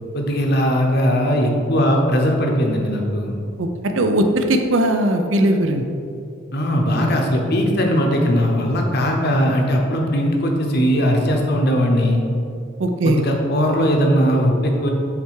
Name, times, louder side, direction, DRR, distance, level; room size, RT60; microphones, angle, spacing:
voice 1, 0.1-3.3 6.5-12.2 13.0-14.9, equal, 50° left, 1 dB, 0.8 m, -19 dB
voice 2, 4.0-5.9 12.8-13.2, right 1 dB, 70° right, 5 dB, 0.6 m, -18 dB
7.4 x 3.4 x 4.8 m, 2.5 s
head